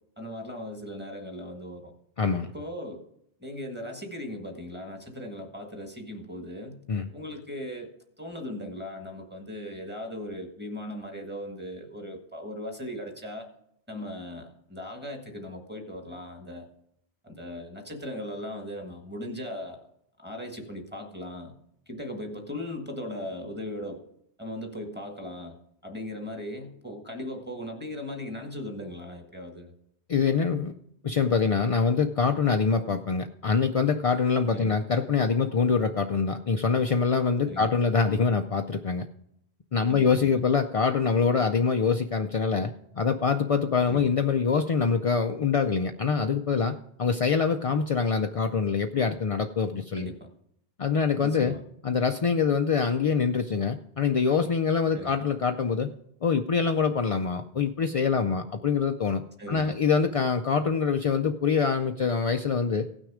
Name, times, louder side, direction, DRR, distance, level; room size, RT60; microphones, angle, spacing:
voice 1, 0.2-1.9 2.4-3.0 3.4-6.8 7.1-7.9 8.2-13.5 13.9-16.7 17.2-19.9 20.2-21.5 21.9-24.0 24.4-25.5 25.8-29.7 34.5-34.8 37.4-37.7 39.9-40.3 43.9-44.2 50.0-50.2 51.2-51.6 54.9-55.2 59.4-59.8, left 1 dB, 10° right, 3 dB, 1.5 m, -38 dB
voice 2, 2.2-2.5 6.9-7.1 30.1-30.7 31.0-39.1 39.7-50.1 50.8-51.5 51.8-55.9 56.2-59.2 59.5-63.0, left 5 dB, 60° left, 6 dB, 0.3 m, -25 dB
16.5 x 6.3 x 4.9 m, 0.74 s
omnidirectional pair, 1.2 m